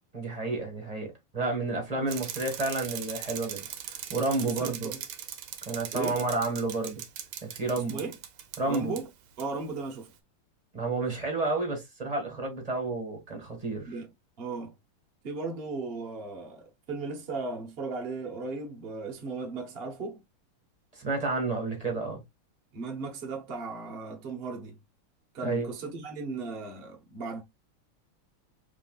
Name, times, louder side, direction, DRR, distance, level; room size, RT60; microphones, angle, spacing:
voice 1, 0.1-1.1 1.3-4.9 5.6-7.0 7.4-8.0 8.6-8.9 10.7-13.9 21.0-22.2 25.4-25.7, right 3 dB, 20° right, 1.2 m, -30 dB
Bicycle, 2.1-9.0 9.4-9.5, right 10 dB, 90° right, 1.6 m, -40 dB
voice 2, 4.4-5.0 5.9-6.2 7.9-8.1 8.6-9.1 9.4-10.1 13.9-14.1 14.4-14.7 15.2-20.2 22.7-24.8 25.3-27.4, right 3 dB, 45° right, 0.7 m, -36 dB
6.0 x 3.2 x 2.3 m
omnidirectional pair, 2.3 m